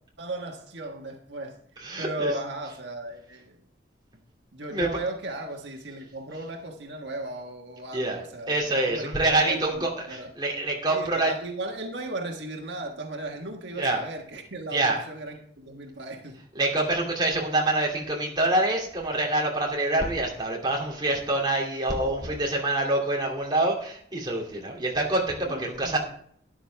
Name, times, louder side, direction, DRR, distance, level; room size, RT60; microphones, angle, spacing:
voice 1, 0.2-1.6 2.0-3.6 4.5-10.3 10.9-16.4 22.3-22.4 25.4-26.0, right 2 dB, 75° right, 2 dB, 1.5 m, -36 dB
voice 2, 1.8-2.3 4.7-4.9 7.9-11.3 13.8-14.0 14.7-15.0 16.5-26.0, right 2 dB, 25° right, -1 dB, 2.6 m, -26 dB
12.5 x 10.0 x 3.4 m, 0.62 s
head